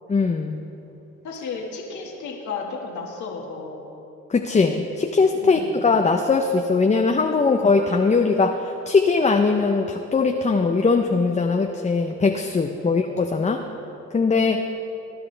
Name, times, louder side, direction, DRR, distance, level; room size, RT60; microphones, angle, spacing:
voice 1, 0.1-0.6 4.3-13.7 14.1-14.7, left 4 dB, 25° left, 4 dB, 0.6 m, -20 dB
voice 2, 1.2-3.9 5.4-5.7 13.7-13.8, left 4 dB, 75° left, -1 dB, 1.8 m, -33 dB
20.0 x 10.5 x 3.3 m, 3.0 s
cardioid pair, 90°, 30 cm